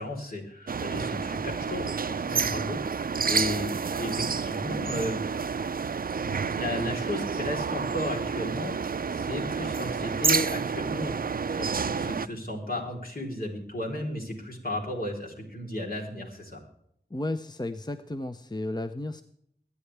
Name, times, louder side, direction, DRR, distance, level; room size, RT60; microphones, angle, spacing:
voice 1, 0.0-5.2 5.5-5.6 6.1-11.2 11.4-16.6, left 1 dB, 60° left, -1 dB, 3.7 m, -34 dB
sound 1, 0.7-12.3, right 5 dB, 60° right, 0.4 m, -29 dB
voice 2, 17.1-19.2, left 1 dB, 25° left, 9 dB, 0.7 m, -33 dB
22.5 x 9.8 x 3.4 m, 0.71 s
wide cardioid pair, 45°, 17 cm